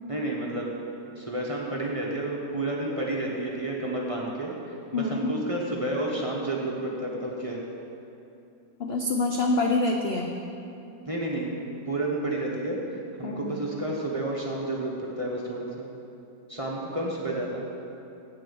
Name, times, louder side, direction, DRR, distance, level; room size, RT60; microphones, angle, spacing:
voice 1, 0.1-0.7 1.2-7.7 11.1-15.9 16.5-17.6, right 2 dB, 25° right, -3 dB, 0.9 m, -31 dB
voice 2, 4.9-5.3 8.8-10.3 13.2-13.5, left 2 dB, 65° left, 2 dB, 0.6 m, -26 dB
8.2 x 7.5 x 6.9 m, 2.7 s
omnidirectional pair, 1.8 m